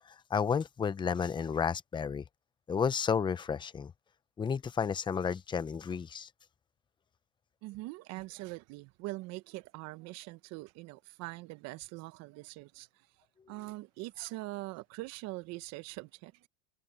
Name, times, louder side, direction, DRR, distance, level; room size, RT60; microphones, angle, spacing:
voice 1, 0.3-2.2 2.7-3.9 4.4-6.3, left 6 dB, 15° left, 0.7 m, -31 dB
voice 2, 7.6-13.1 13.5-16.5, right 20 dB, 50° right, 1.0 m, -43 dB
supercardioid pair, 130°, 34 cm